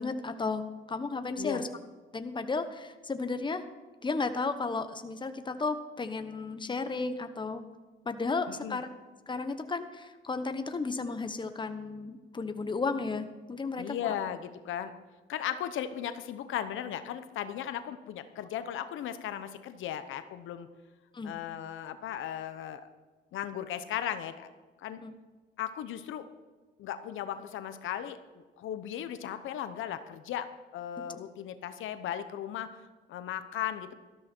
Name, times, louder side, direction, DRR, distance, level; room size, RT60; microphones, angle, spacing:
voice 1, 0.0-1.7 2.1-3.6 4.0-7.6 8.0-8.9 9.3-14.1 21.1-21.3 25.0-25.1, left 3 dB, 25° left, 9 dB, 1.1 m, -33 dB
voice 2, 8.5-8.8 13.8-14.9 15.3-20.7 21.2-22.9 23.3-24.5 24.8-25.0 25.6-26.3 26.8-30.5 30.7-33.9, left 10 dB, 80° left, 10 dB, 0.9 m, -36 dB
13.5 x 12.5 x 4.5 m, 1.3 s
cardioid pair, 90°, 20 cm